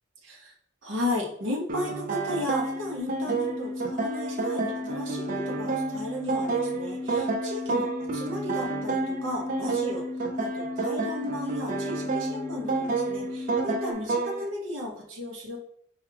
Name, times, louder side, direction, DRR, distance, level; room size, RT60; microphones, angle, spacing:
voice 1, 0.2-0.5 0.8-10.1 10.4-15.6, left 1 dB, 65° right, 0 dB, 0.7 m, -35 dB
sound 1, 1.7-14.5, right 4 dB, 40° right, 0.4 m, -30 dB
sound 2, 3.0-13.9, left 3 dB, 45° left, 0.3 m, -35 dB
4.7 x 2.3 x 3.2 m, 0.69 s
head